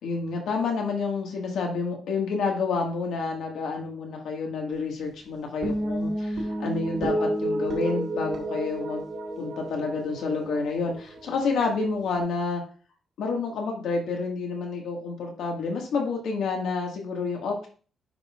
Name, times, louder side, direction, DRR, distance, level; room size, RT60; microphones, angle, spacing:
voice 1, 0.0-9.0 9.4-12.6 13.2-17.7, left 4 dB, 80° left, 1 dB, 2.0 m, -29 dB
sound 1, 5.6-12.2, right 1 dB, 60° right, 1.8 m, -31 dB
9.5 x 5.6 x 2.5 m, 0.40 s
wide cardioid pair, 175°, 0 cm